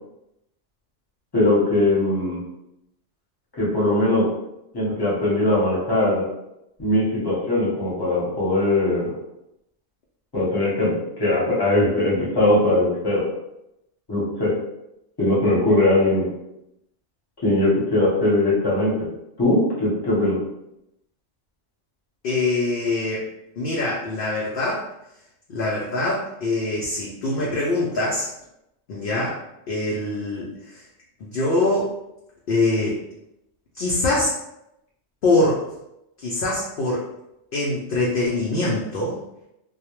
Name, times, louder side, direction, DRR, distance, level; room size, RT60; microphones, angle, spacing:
voice 1, 1.3-2.4 3.6-4.3 4.7-6.2 6.8-9.1 10.3-13.2 14.1-14.5 15.2-16.3 17.4-19.1 19.4-20.4, left 1 dB, 20° left, -7 dB, 0.8 m, -20 dB
voice 2, 22.2-23.3 23.6-24.9 25.5-28.3 28.9-29.4 29.7-30.8 31.2-31.9 32.5-33.0 33.7-34.3 35.2-35.6 36.2-37.1 37.5-39.2, left 2 dB, 60° left, -4 dB, 0.6 m, -23 dB
2.2 x 2.1 x 3.0 m, 0.85 s
omnidirectional pair, 1.2 m